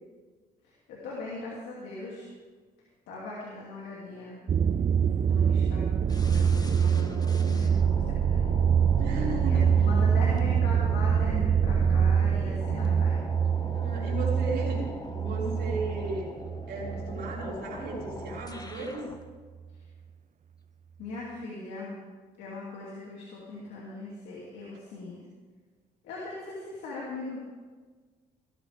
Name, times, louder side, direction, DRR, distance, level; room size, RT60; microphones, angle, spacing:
voice 1, 0.6-2.3 3.1-4.4 5.2-8.4 9.5-13.2 21.0-21.9 22.4-25.2 26.0-27.4, left 3 dB, 80° left, -4 dB, 2.6 m, -39 dB
sound 1, 4.5-17.5 17.8-18.4, right 7 dB, 40° right, 0.5 m, -25 dB
sound 2, 6.1-19.2, left 2 dB, 20° left, 1.5 m, -43 dB
voice 2, 8.9-9.9 13.7-14.8 15.1-16.4 16.7-19.1, right 2 dB, 65° right, -4 dB, 5.1 m, -35 dB
18.5 x 13.5 x 3.5 m, 1.4 s
supercardioid pair, 55°, 18 cm